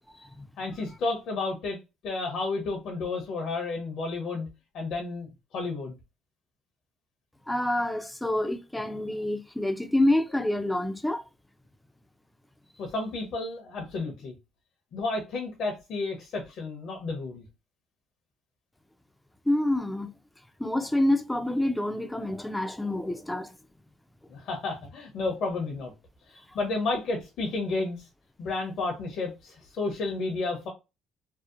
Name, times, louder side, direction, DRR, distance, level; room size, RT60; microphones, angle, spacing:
voice 1, 0.6-1.8 2.0-4.5 4.7-6.0 12.8-14.3 14.9-17.4 24.3-25.9 26.3-28.0 28.4-30.7, left 3 dB, 65° left, 0.7 m, -31 dB
voice 2, 7.5-11.2 19.5-20.1 20.6-23.5, left 1 dB, 5° left, 0.4 m, -27 dB
2.7 x 2.1 x 2.4 m
supercardioid pair, 70°, 0 cm